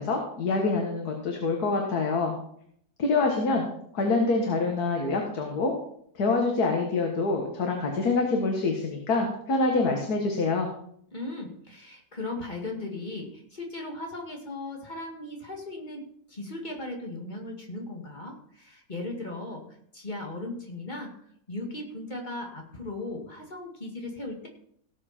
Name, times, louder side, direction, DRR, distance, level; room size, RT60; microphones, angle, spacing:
voice 1, 0.0-2.3 3.0-3.7 3.9-5.7 6.2-10.7, left 3 dB, 75° left, 2 dB, 2.0 m, -26 dB
voice 2, 11.1-16.0 16.3-21.1 21.5-24.5, left 2 dB, 30° left, 0 dB, 2.3 m, -37 dB
17.5 x 7.0 x 4.4 m, 0.68 s
omnidirectional pair, 1.7 m